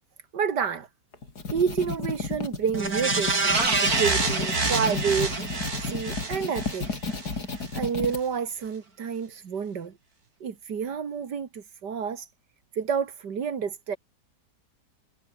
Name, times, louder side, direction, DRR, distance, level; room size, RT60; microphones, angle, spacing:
voice 1, 0.3-0.9 1.5-5.3 5.8-7.0 7.5-9.9 10.4-12.3 12.7-14.0, right 6 dB, 80° right, 2.5 m, -29 dB
sound 1, 1.1-8.2, left 4 dB, 70° left, 4.0 m, -33 dB
sound 2, 2.7-7.3 7.7-7.8, right 3 dB, 60° right, 4.4 m, -27 dB
omnidirectional pair, 1.8 m